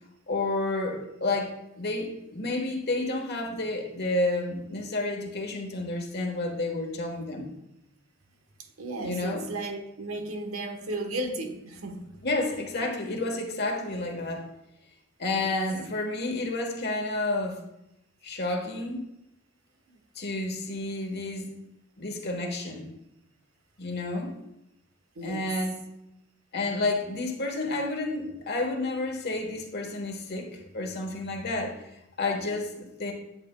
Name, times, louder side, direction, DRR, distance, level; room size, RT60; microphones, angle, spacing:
voice 1, 0.3-7.5 9.0-9.5 12.2-14.5 15.2-17.6 18.2-19.0 20.1-21.5 22.0-22.9 23.8-24.3 25.2-25.8 26.5-31.8 32.2-33.1, left 2 dB, 50° left, 3 dB, 1.3 m, -30 dB
voice 2, 8.8-12.3 12.8-12.9 15.3-15.5 25.2-25.5, right 2 dB, 80° right, 5 dB, 1.1 m, -35 dB
11.0 x 8.3 x 2.3 m, 0.85 s
head